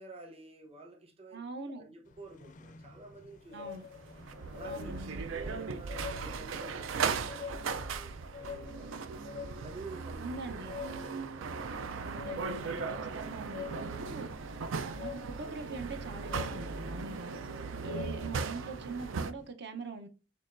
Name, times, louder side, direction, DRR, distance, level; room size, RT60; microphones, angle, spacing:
voice 1, 0.0-1.4 1.7-3.7 4.5-5.1 5.3-9.0 9.6-10.3 10.8-11.3 17.5-18.0, right 2 dB, 30° right, 1.0 m, -50 dB
voice 2, 1.3-1.8 3.5-3.8 4.6-5.2 10.2-10.8 12.0-17.4 17.8-20.1, right 3 dB, 60° right, 0.7 m, -43 dB
sound 1, 2.1-19.5, left 6 dB, 40° left, 0.4 m, -48 dB
sound 2, 3.7-19.3, right 5 dB, 85° right, 0.4 m, -38 dB
6.4 x 3.1 x 2.5 m
head